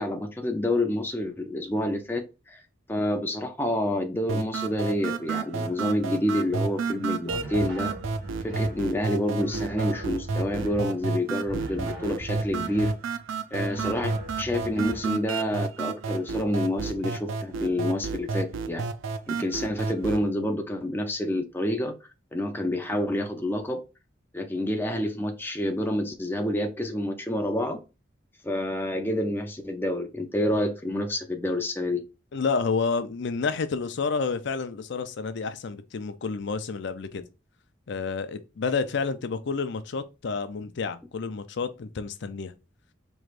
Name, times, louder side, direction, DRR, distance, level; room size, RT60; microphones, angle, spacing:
voice 1, 0.0-2.6 2.9-7.9 8.4-12.9 13.5-18.8 19.3-21.9 22.3-23.8 24.3-27.8 28.4-32.0, left 1 dB, 10° left, 0.5 m, -28 dB
sound 1, 4.3-20.3, right 4 dB, 80° right, 0.4 m, -31 dB
sound 2, 7.3-8.8 9.4-10.9 11.4-13.0 13.5-15.1, right 1 dB, 60° right, 2.1 m, -39 dB
voice 2, 32.3-37.2 37.9-42.5, left 4 dB, 65° left, 0.5 m, -29 dB
4.7 x 3.1 x 2.5 m
head